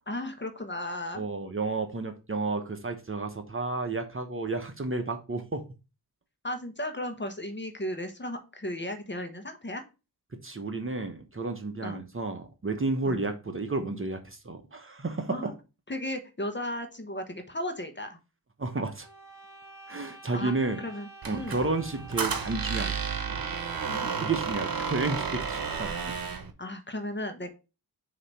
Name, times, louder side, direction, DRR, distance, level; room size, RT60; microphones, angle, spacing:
voice 1, 0.1-1.2 6.4-9.8 11.8-12.0 13.0-13.2 15.3-15.5 15.9-18.2 20.3-21.6 23.9-24.4 26.6-27.5, left 1 dB, 30° left, 6 dB, 1.2 m, -35 dB
voice 2, 1.1-5.6 10.4-15.5 18.6-19.1 19.9-20.8 21.2-22.9 24.2-25.9, right 3 dB, 30° right, 6 dB, 0.9 m, -31 dB
sound 1, 19.0-24.3, right 4 dB, 5° right, 1.5 m, -48 dB
Squeak, 21.2-26.5, right 6 dB, 60° right, 1.1 m, -32 dB
6.5 x 3.0 x 5.5 m, 0.30 s
cardioid pair, 65°, 40 cm